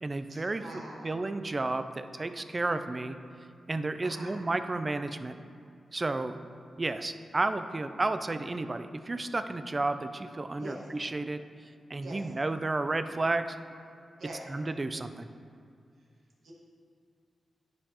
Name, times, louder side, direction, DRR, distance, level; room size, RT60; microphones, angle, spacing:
voice 1, 0.0-0.6 1.0-3.2 3.7-5.4 5.9-6.4 6.8-11.4 11.9-13.6 14.5-15.3, right 2 dB, 35° right, 10 dB, 0.4 m, -32 dB
voice 2, 0.6-1.1 4.0-4.4 10.6-10.8 12.0-12.2 14.2-14.5 16.4-16.5, right 1 dB, 85° right, -5 dB, 1.7 m, -43 dB
10.0 x 5.3 x 2.9 m, 2.3 s
cardioid pair, 60°, 0 cm